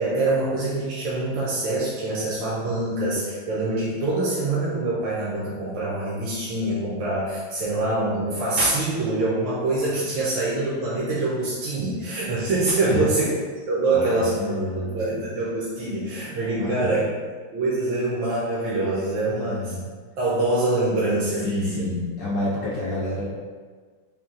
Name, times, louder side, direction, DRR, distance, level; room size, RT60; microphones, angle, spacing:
voice 1, 0.0-13.3 13.7-14.4 14.7-17.0 17.5-19.8 20.2-21.9, right 2 dB, 75° right, -7 dB, 1.5 m, -25 dB
voice 2, 13.9-15.2 16.6-17.0 19.3-19.9 21.4-23.2, left 1 dB, 70° left, -6 dB, 0.8 m, -29 dB
4.2 x 2.3 x 3.7 m, 1.5 s
omnidirectional pair, 2.1 m